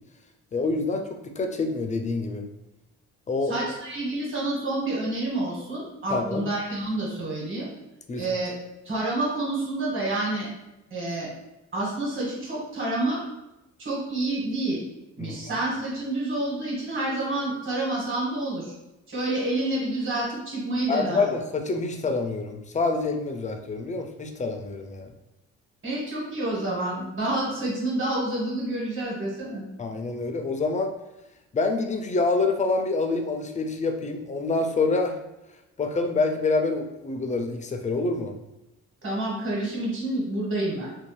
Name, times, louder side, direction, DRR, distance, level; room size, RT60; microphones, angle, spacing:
voice 1, 0.5-2.5 3.3-3.5 6.1-6.4 8.1-8.2 15.2-15.4 20.9-25.1 29.8-30.9 31.5-35.2 35.8-38.4, left 3 dB, 25° left, 5 dB, 0.4 m, -26 dB
voice 2, 3.5-7.7 8.2-8.5 8.8-10.5 10.9-11.3 11.7-13.2 13.8-14.8 15.2-18.7 19.1-21.3 25.8-29.7 39.0-40.9, right 2 dB, 40° right, -5 dB, 1.4 m, -28 dB
2.6 x 2.1 x 3.2 m, 0.96 s
cardioid pair, 90°, 30 cm